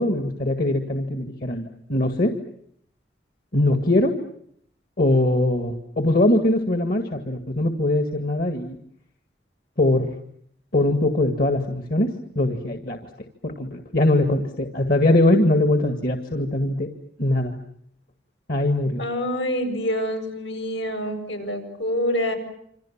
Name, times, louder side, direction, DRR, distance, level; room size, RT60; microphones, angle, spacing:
voice 1, 0.0-2.3 3.5-4.2 5.0-8.8 9.8-10.1 10.7-13.1 13.4-16.9 17.2-17.5 18.5-19.0, left 1 dB, 50° left, 6 dB, 2.1 m, -21 dB
voice 2, 19.0-22.4, equal, 75° left, 7 dB, 7.9 m, -26 dB
27.5 x 27.0 x 7.4 m, 0.69 s
head